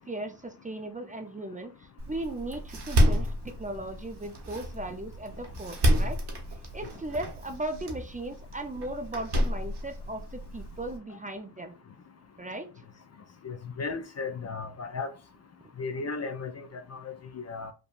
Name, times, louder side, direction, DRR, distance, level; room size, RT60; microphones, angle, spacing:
voice 1, 0.1-1.7 2.1-6.2 6.7-11.7 12.4-12.7, right 1 dB, 20° right, 0.5 m, -37 dB
Door, 2.0-11.0, equal, 60° right, 1.0 m, -30 dB
voice 2, 13.4-15.1 15.8-17.7, left 4 dB, 40° left, 0.4 m, -35 dB
3.3 x 2.1 x 2.4 m
supercardioid pair, 45°, 45 cm